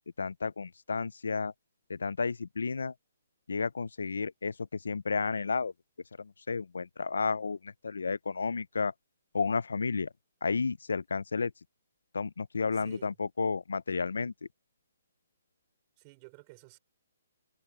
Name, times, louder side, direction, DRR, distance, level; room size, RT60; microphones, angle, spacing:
voice 1, 0.2-1.5 1.9-2.9 3.5-5.7 6.2-8.9 9.3-10.1 10.4-11.5 12.1-14.3, left 4 dB, 90° left, 0.5 m, -32 dB
voice 2, 12.7-13.2 16.0-16.8, right 29 dB, 30° right, 5.0 m, -53 dB
hypercardioid pair, 155°, 0 cm